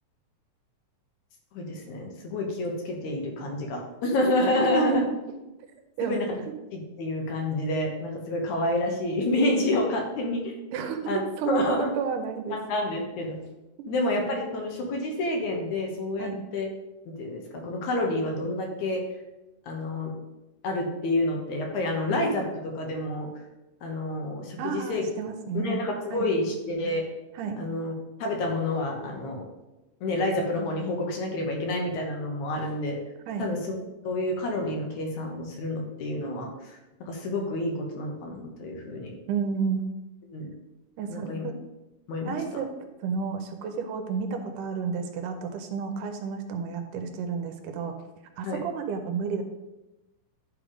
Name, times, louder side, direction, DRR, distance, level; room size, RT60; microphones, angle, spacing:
voice 1, 1.5-5.0 6.0-6.4 6.7-10.6 11.1-11.2 11.5-11.9 12.5-13.4 13.9-16.7 17.2-19.0 19.6-20.1 20.6-23.3 23.8-25.1 25.5-27.0 27.6-27.9 28.2-29.5 30.0-33.0 33.4-33.8 34.0-39.2 40.3-40.5 41.1-41.4 42.1-42.4 43.2-43.3 48.4-48.6, left 1 dB, 70° left, 1 dB, 2.3 m, -28 dB
voice 2, 4.6-5.0 6.0-6.2 10.7-12.6 16.2-16.4 24.6-25.8 26.1-26.3 27.3-27.6 33.3-33.5 39.3-39.9 41.0-41.5 42.3-48.0 48.4-49.4, right 6 dB, 80° right, 6 dB, 2.1 m, -31 dB
9.9 x 3.5 x 4.9 m, 1.0 s
omnidirectional pair, 3.9 m